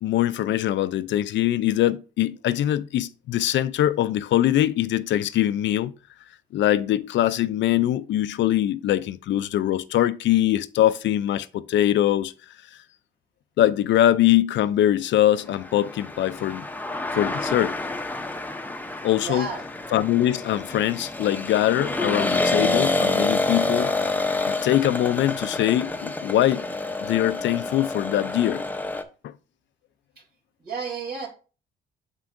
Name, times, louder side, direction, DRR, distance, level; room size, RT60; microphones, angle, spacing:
voice 1, 0.0-5.9 6.5-12.3 13.6-16.6 17.1-17.8 19.0-19.5 19.9-23.9 24.5-26.6 27.0-28.6 29.2-29.3, left 12 dB, 70° left, 0.4 m, -22 dB
sound 1, 15.6-29.0, left 2 dB, 10° left, 0.7 m, -28 dB
voice 2, 19.2-19.6 30.6-31.3, right 5 dB, 50° right, 3.0 m, -31 dB
7.3 x 5.9 x 2.6 m
cardioid pair, 90°, 20 cm